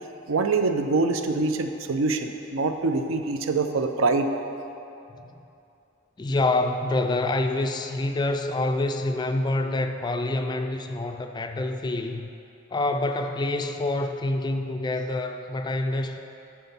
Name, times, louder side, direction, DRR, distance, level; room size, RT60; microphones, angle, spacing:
voice 1, 0.3-4.3, right 3 dB, 75° right, 7 dB, 0.5 m, -24 dB
voice 2, 6.2-12.3 12.7-16.2, left 2 dB, 20° left, 6 dB, 0.3 m, -26 dB
9.8 x 4.4 x 5.5 m, 2.8 s
head